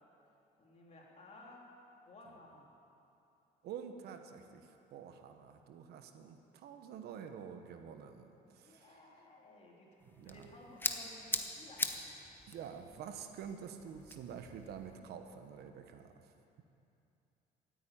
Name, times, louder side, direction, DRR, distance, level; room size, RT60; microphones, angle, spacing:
voice 1, 0.6-1.6 2.0-2.7 8.6-12.1, left 2 dB, 40° left, -3 dB, 3.5 m, -56 dB
voice 2, 3.6-9.0 10.1-10.5 12.5-16.3, right 7 dB, 75° right, 7 dB, 1.1 m, -48 dB
sound 1, 10.0-15.0, left 2 dB, 10° left, 1.0 m, -42 dB
14.5 x 9.0 x 9.1 m, 2.7 s
cardioid pair, 110°, 17 cm